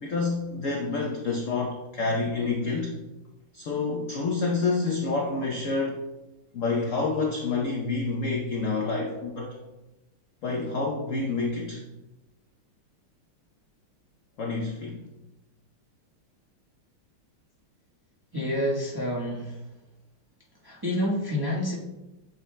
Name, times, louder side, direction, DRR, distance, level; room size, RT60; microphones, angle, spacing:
voice 1, 0.0-3.0 3.5-6.0 6.5-9.6 10.4-11.8 14.4-15.0, left 3 dB, 65° left, 0 dB, 0.7 m, -28 dB
voice 2, 18.3-19.6 20.6-21.7, equal, 15° right, -5 dB, 0.8 m, -28 dB
8.4 x 6.2 x 2.2 m, 1.0 s
omnidirectional pair, 2.3 m